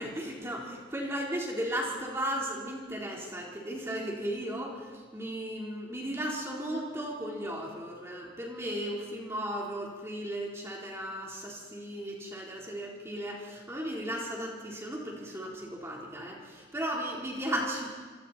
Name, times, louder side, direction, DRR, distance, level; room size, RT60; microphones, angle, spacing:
voice 1, 0.0-17.9, equal, 15° right, -2 dB, 4.1 m, -35 dB
26.0 x 25.5 x 4.5 m, 1.4 s
head